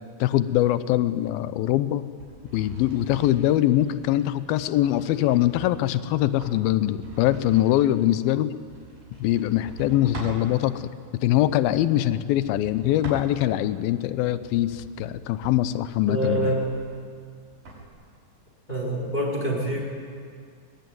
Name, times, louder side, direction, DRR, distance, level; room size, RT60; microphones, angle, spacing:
voice 1, 0.2-2.1 2.5-8.5 9.2-16.5, left 13 dB, 85° left, 13 dB, 2.6 m, -23 dB
sound 1, 2.1-10.5 11.3-13.7 14.2-17.8, right 3 dB, 70° right, 7.3 m, -43 dB
voice 2, 16.1-16.6 18.7-19.8, right 1 dB, 10° left, -3 dB, 4.8 m, -25 dB
22.5 x 21.5 x 9.4 m, 2.1 s
omnidirectional pair, 4.1 m